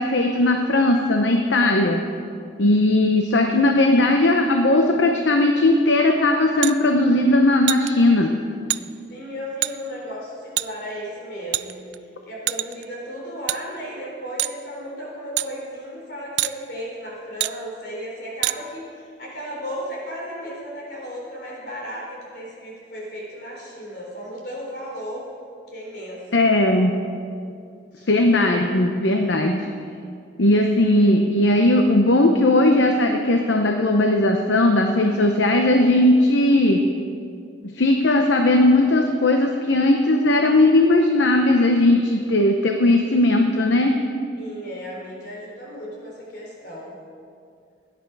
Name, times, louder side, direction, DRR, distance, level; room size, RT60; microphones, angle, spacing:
voice 1, 0.0-2.0 2.6-8.4 26.3-26.9 28.1-29.7 30.4-36.8 37.6-43.9, left 1 dB, 75° left, 3 dB, 0.8 m, -18 dB
sound 1, 6.6-6.8 7.7-7.9 8.7-8.8 9.6-9.7 10.6-10.7 11.5-12.0 12.5-12.8 13.5-13.6 14.4-14.6 15.4-15.5 16.4-16.5 17.4-17.5 18.4-18.6, right 16 dB, 65° right, 0.3 m, -24 dB
voice 2, 9.1-25.3 25.7-26.4 27.9-28.1 44.3-47.0, equal, 55° left, -3 dB, 4.0 m, -35 dB
17.0 x 10.0 x 4.8 m, 2.3 s
head